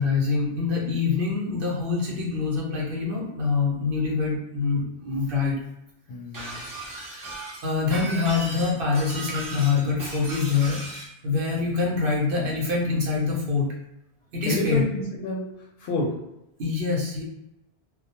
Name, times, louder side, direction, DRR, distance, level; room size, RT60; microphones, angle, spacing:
voice 1, 0.0-5.6 7.4-10.8 11.2-13.7 14.3-14.8 16.6-17.2, left 4 dB, 65° right, -3 dB, 0.9 m, -25 dB
voice 2, 6.1-6.8 14.4-16.2, left 1 dB, 70° left, -3 dB, 0.8 m, -29 dB
Shatter, 6.3-11.1, right 2 dB, 30° right, 0.4 m, -36 dB
2.2 x 2.1 x 2.8 m, 0.86 s
omnidirectional pair, 1.1 m